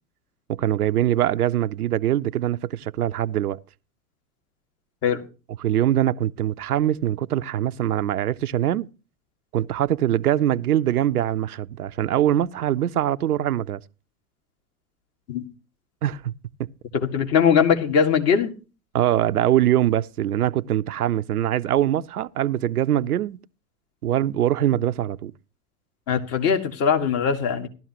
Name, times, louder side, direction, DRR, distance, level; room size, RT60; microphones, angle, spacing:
voice 1, 0.5-3.6 5.6-8.9 9.5-13.8 16.0-16.3 16.6-16.7 18.9-23.4 24.0-25.3, right 12 dB, 80° right, 0.6 m, -23 dB
voice 2, 16.9-18.5 26.1-27.7, left 7 dB, 35° left, 1.9 m, -21 dB
16.5 x 12.5 x 2.9 m
hypercardioid pair, 105°, 44 cm